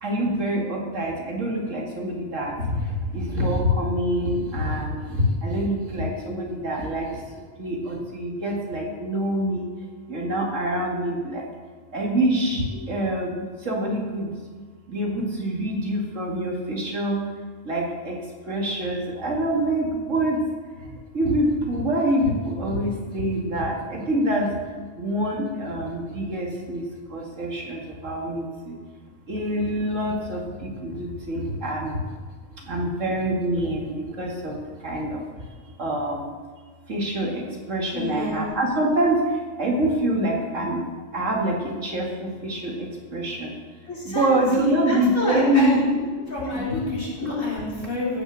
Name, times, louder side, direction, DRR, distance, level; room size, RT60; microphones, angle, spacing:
voice 1, 0.0-7.2 7.6-9.7 10.1-11.5 11.9-13.3 13.6-14.3 14.9-17.3 17.6-18.2 18.5-20.4 21.1-24.6 25.0-26.8 27.1-28.8 29.3-32.0 32.6-34.6 34.8-35.2 35.8-36.3 36.9-39.3 39.6-40.8 41.1-43.5 44.0-46.1 46.5-46.8, right 1 dB, 65° right, -1 dB, 2.4 m, -25 dB
voice 2, 37.9-38.5 43.9-44.3 44.6-45.8 46.3-48.2, left 2 dB, 75° left, -7 dB, 4.3 m, -28 dB
14.0 x 6.0 x 6.3 m, 1.5 s
omnidirectional pair, 1.4 m